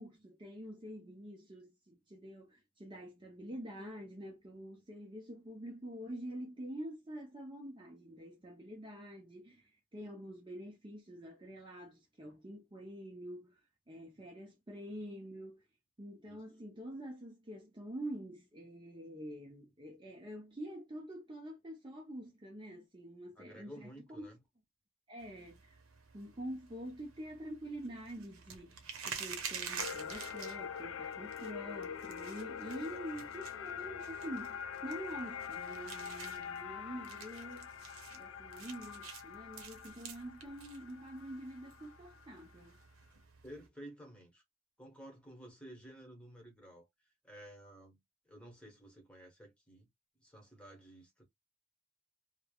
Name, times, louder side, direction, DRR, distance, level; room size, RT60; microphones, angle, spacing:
voice 1, 0.0-15.6 16.0-24.3 25.1-25.8 26.1-37.7 38.1-42.8, right 1 dB, 25° right, 0.5 m, -46 dB
voice 2, 23.4-24.4 32.6-33.2 43.4-44.4 44.8-48.0 48.2-49.9 50.2-51.2, equal, 5° left, 1.0 m, -53 dB
sound 1, 25.2-43.7, right 6 dB, 80° right, 0.7 m, -49 dB
sound 2, 29.8-42.4, left 7 dB, 65° left, 0.4 m, -45 dB
3.2 x 2.0 x 2.2 m
head